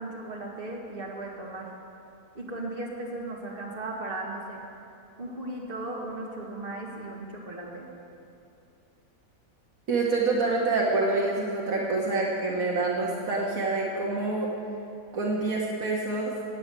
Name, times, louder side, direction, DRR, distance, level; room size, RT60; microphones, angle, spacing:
voice 1, 0.0-1.7 2.3-4.6 5.2-7.9, right 2 dB, 35° right, -3 dB, 2.4 m, -36 dB
voice 2, 9.9-14.5 15.1-16.3, right 3 dB, 70° right, -2 dB, 1.7 m, -26 dB
14.5 x 8.6 x 8.1 m, 2.6 s
omnidirectional pair, 1.6 m